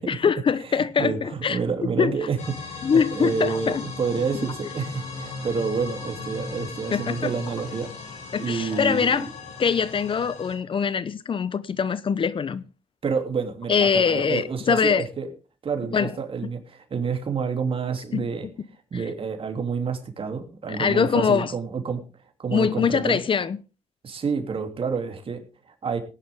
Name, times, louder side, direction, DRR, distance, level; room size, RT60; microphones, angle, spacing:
voice 1, 0.0-1.6 2.0-2.1 2.8-3.8 6.9-7.3 8.3-9.3 9.6-12.6 13.7-15.1 15.9-16.1 18.1-18.3 18.9-19.0 20.7-21.5 22.5-23.6, left 6 dB, 45° left, 0.8 m, -23 dB
voice 2, 0.6-7.9 8.4-9.3 13.0-15.3 15.6-18.4 18.9-22.0 22.4-23.2 24.0-26.0, right 5 dB, 50° right, 3.1 m, -29 dB
sound 1, 2.4-10.6, left 4 dB, 75° left, 4.6 m, -37 dB
18.5 x 10.5 x 3.7 m
cardioid pair, 70°, 12 cm